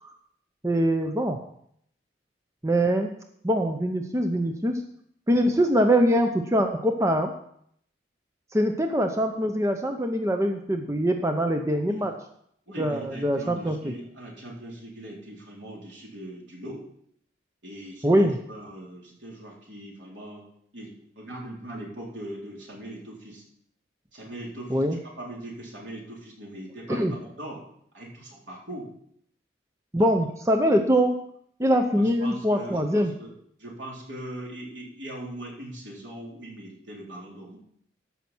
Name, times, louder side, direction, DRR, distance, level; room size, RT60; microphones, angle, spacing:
voice 1, 0.6-1.4 2.6-3.1 3.4-4.8 5.3-7.3 8.5-12.1 12.8-14.0 18.0-18.4 24.7-25.0 26.9-27.1 29.9-31.1 31.6-33.1, equal, 15° right, 5 dB, 0.7 m, -23 dB
voice 2, 12.7-16.8 17.6-20.4 20.7-23.4 24.1-27.6 27.9-28.9 30.0-30.1 32.0-33.3 33.6-37.6, right 1 dB, 75° right, -3 dB, 3.8 m, -40 dB
14.0 x 5.8 x 6.0 m, 0.68 s
head